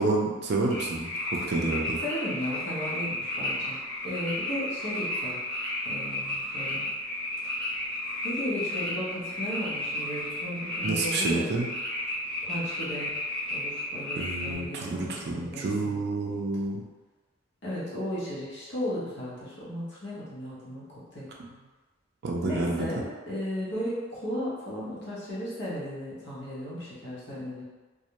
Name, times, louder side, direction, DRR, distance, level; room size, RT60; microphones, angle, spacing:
voice 1, 0.0-2.0 10.8-11.7 14.2-16.8 22.2-22.9, right 2 dB, 55° right, -1 dB, 0.4 m, -29 dB
sound 1, 0.7-14.5, left 1 dB, 5° left, 0.6 m, -33 dB
voice 2, 2.0-3.8 4.0-5.4 5.8-6.9 8.2-11.5 12.4-13.1 13.5-16.0 17.6-20.8 21.1-21.3 22.4-27.6, equal, 60° left, -8 dB, 0.9 m, -35 dB
2.3 x 2.1 x 2.8 m, 1.2 s
head